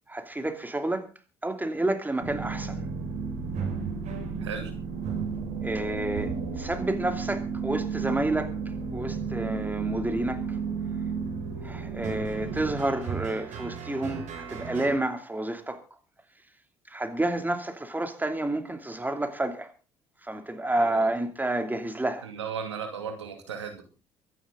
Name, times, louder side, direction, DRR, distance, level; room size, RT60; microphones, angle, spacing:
voice 1, 0.1-1.1 1.4-2.8 5.6-8.5 8.9-10.6 11.6-15.8 16.9-19.7 20.2-22.3, right 2 dB, 10° right, 2.8 m, -29 dB
sound 1, 2.2-15.0, right 5 dB, 55° right, 5.6 m, -33 dB
voice 2, 22.2-23.8, right 6 dB, 90° right, 2.4 m, -35 dB
23.5 x 10.5 x 3.8 m
hypercardioid pair, 55°, 14 cm